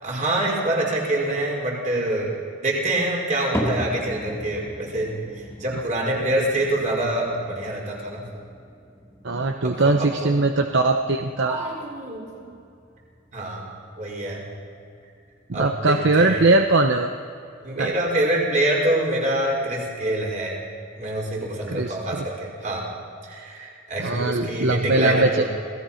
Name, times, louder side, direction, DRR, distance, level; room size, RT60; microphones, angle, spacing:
voice 1, 0.0-2.3 2.6-8.2 9.6-10.4 11.4-12.5 13.3-13.7 14.0-14.4 15.5-16.4 17.6-20.6 21.0-22.8 23.2-25.5, right 1 dB, 40° right, -2 dB, 5.3 m, -26 dB
sound 1, 3.5-19.9 20.2-20.7 21.3-21.4 22.2-22.3, equal, 15° left, 2.5 m, -38 dB
voice 2, 9.2-11.6 15.5-17.1 17.8-17.9 21.7-22.2 24.0-25.3, right 2 dB, 60° right, 6 dB, 0.9 m, -21 dB
27.0 x 18.0 x 5.8 m, 2.5 s
head